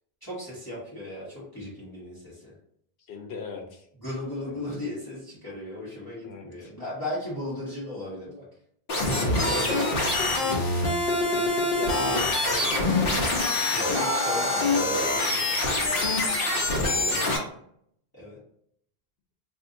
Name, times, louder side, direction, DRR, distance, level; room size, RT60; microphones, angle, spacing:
voice 1, 0.2-2.5 4.0-8.4 13.7-17.4 18.1-18.4, left 1 dB, 20° left, -9 dB, 1.3 m, -37 dB
voice 2, 3.1-3.9 6.2-6.7 9.2-10.8 11.3-12.9 16.9-17.4, left 4 dB, 90° left, 2 dB, 1.0 m, -37 dB
sound 1, 8.9-17.4, left 2 dB, 65° left, 0.9 m, -25 dB
2.6 x 2.6 x 3.7 m, 0.68 s
omnidirectional pair, 1.0 m